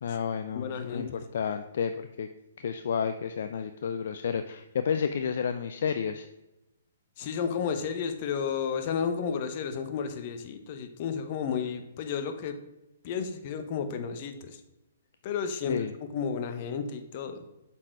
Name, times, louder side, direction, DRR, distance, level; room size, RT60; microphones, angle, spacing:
voice 1, 0.0-2.3 2.6-6.3 15.7-15.9, left 7 dB, 65° left, 9 dB, 0.4 m, -31 dB
voice 2, 0.5-1.2 7.2-12.6 13.0-14.6 15.2-15.9 16.1-17.4, left 6 dB, 45° left, 8 dB, 0.9 m, -32 dB
7.3 x 4.4 x 4.6 m, 0.95 s
hypercardioid pair, 130°, 0 cm